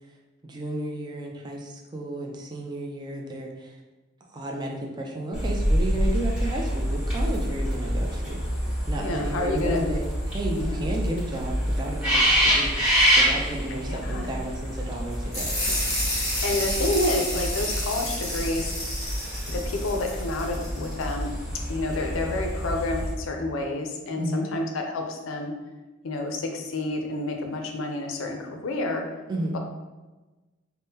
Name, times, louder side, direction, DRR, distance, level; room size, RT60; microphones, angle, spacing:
voice 1, 0.4-3.7 4.3-8.6 8.9-12.8 13.2-15.5 24.2-24.5 29.3-29.6, right 1 dB, 20° right, 0 dB, 0.3 m, -32 dB
sound 1, 5.3-23.1, equal, 5° right, 1.3 m, -27 dB
voice 2, 9.0-9.9 10.6-10.9 13.7-14.3 16.4-18.7 19.5-21.3 21.7-25.5 26.0-29.1 29.5-29.6, left 2 dB, 75° left, 3 dB, 0.4 m, -29 dB
sound 2, 15.3-21.1, left 1 dB, 15° left, 1.0 m, -30 dB
3.5 x 2.0 x 2.7 m, 1.2 s
head